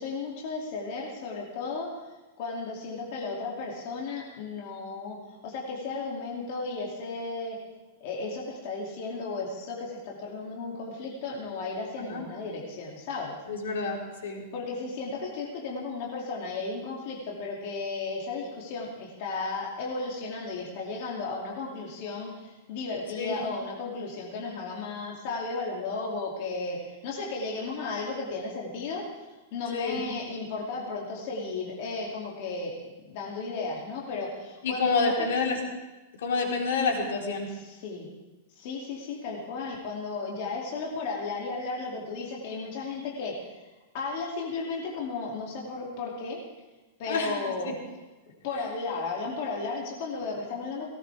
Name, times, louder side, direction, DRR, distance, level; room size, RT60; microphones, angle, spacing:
voice 1, 0.0-7.6 8.0-13.4 14.5-32.8 33.0-35.5 37.5-38.1 38.6-46.4 47.0-47.8 48.4-50.9, left 3 dB, 45° left, -3 dB, 2.5 m, -34 dB
voice 2, 13.5-14.4 23.2-23.4 29.7-30.0 34.6-35.6 36.2-37.5 47.1-47.3 47.6-47.7 48.6-48.7, left 4 dB, 85° left, 0 dB, 3.8 m, -28 dB
18.5 x 18.0 x 3.4 m, 1.1 s
supercardioid pair, 170°, 0 cm